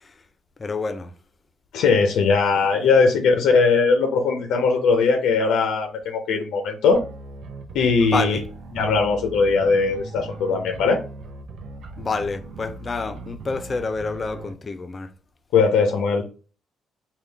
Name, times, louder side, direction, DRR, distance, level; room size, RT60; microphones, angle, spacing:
voice 1, 0.6-1.1 8.1-8.4 12.0-15.1, left 4 dB, 35° left, 0.4 m, -28 dB
voice 2, 1.7-7.0 7.7-8.4 8.7-11.0 15.5-16.3, left 4 dB, 85° left, 0.6 m, -19 dB
sound 1, 6.9-14.5, right 3 dB, 80° right, 0.6 m, -39 dB
3.7 x 2.3 x 3.3 m
cardioid pair, 90°, 0 cm